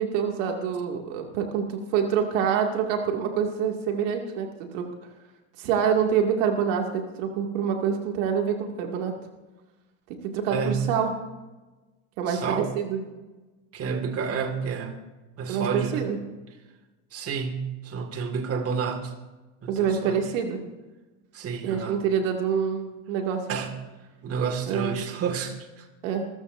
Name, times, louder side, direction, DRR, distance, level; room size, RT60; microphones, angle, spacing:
voice 1, 0.0-4.5 4.7-4.8 5.6-9.1 10.3-11.1 12.2-13.1 15.5-16.2 19.7-20.6 21.6-23.6 24.7-25.0 26.0-26.2, right 7 dB, 75° right, 2 dB, 2.4 m, -26 dB
voice 2, 10.5-10.9 12.3-12.7 13.7-15.0 15.4-16.0 17.1-19.1 19.6-20.2 21.3-22.0 23.5-23.7 24.2-25.9, right 6 dB, 35° right, 5 dB, 2.0 m, -30 dB
25.5 x 14.5 x 2.7 m, 1.1 s
supercardioid pair, 105°, 39 cm